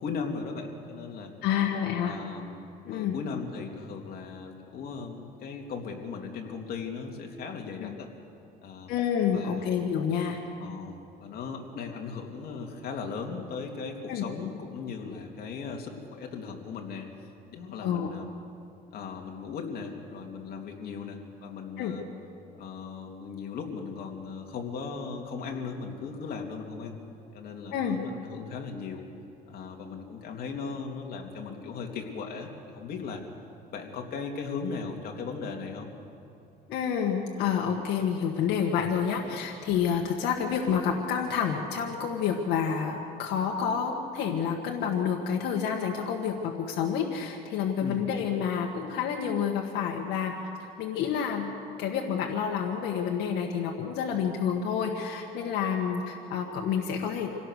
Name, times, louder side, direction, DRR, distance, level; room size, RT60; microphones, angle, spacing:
voice 1, 0.0-1.3 2.0-2.6 2.9-8.1 8.6-9.0 9.3-9.7 10.6-17.1 17.5-18.3 18.9-22.0 22.6-27.0 27.3-29.0 29.5-33.2 33.7-35.9 47.8-48.1, left 5 dB, 65° left, 1 dB, 3.0 m, -37 dB
voice 2, 1.4-2.2 2.9-3.1 7.8-7.9 8.9-10.4 14.1-14.2 17.8-18.1 21.8-21.9 27.7-28.0 36.7-50.3 50.6-51.5 51.8-57.3, left 7 dB, 85° left, 1 dB, 1.7 m, -29 dB
26.5 x 17.0 x 6.6 m, 2.7 s
cardioid pair, 110°, 17 cm